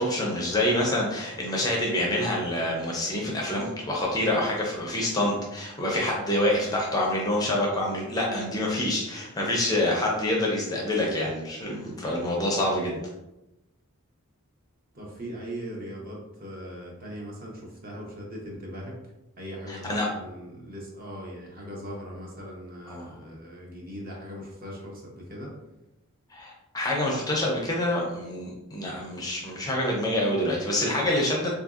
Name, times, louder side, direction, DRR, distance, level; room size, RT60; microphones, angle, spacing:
voice 1, 0.0-13.0 19.7-20.1 22.9-23.1 26.3-31.5, left 1 dB, 15° left, -2 dB, 0.5 m, -27 dB
voice 2, 14.9-19.0 19.4-25.5, equal, 40° right, -2 dB, 0.8 m, -39 dB
3.6 x 2.6 x 2.3 m, 0.94 s
head